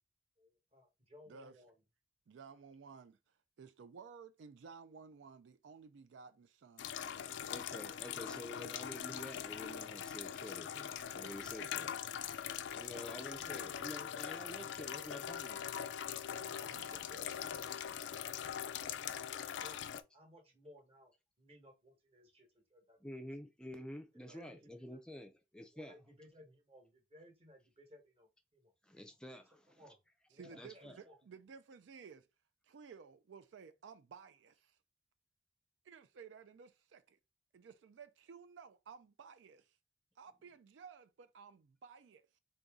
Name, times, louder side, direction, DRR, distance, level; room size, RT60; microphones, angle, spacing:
voice 1, 0.4-1.7 13.1-13.7 14.8-15.3 16.3-23.1 24.3-25.3 25.7-28.7 29.5-30.0 30.3-31.2, left 1 dB, 35° right, 1.1 m, -61 dB
voice 2, 2.3-7.5 11.2-11.9 13.8-13.9 16.5-17.4 24.3-24.4 30.3-32.3 32.6-34.8 35.8-37.2 37.5-39.8 40.2-42.4, right 6 dB, 80° right, 0.4 m, -56 dB
sound 1, 6.8-20.0, left 9 dB, 70° left, 0.4 m, -42 dB
voice 3, 7.4-11.9 12.7-15.6 23.0-25.9 28.8-29.8 30.5-31.0, left 1 dB, 5° left, 0.4 m, -49 dB
3.8 x 2.6 x 3.5 m
head